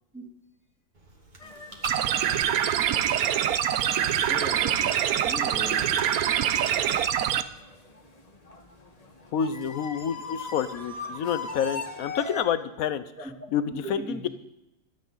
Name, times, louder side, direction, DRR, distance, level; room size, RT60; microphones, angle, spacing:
Chewing mastication, 0.9-7.6, right 2 dB, 30° right, 2.1 m, -47 dB
sound 1, 1.4-12.4, left 3 dB, 25° left, 1.4 m, -42 dB
sound 2, 1.8-7.4, right 10 dB, 85° right, 1.2 m, -25 dB
voice 1, 4.3-6.1 13.2-13.3 13.7-14.3, right 1 dB, 5° right, -1 dB, 2.4 m, -38 dB
voice 2, 9.3-14.3, left 8 dB, 75° left, 12 dB, 1.3 m, -29 dB
24.0 x 8.8 x 4.0 m, 0.89 s
omnidirectional pair, 1.5 m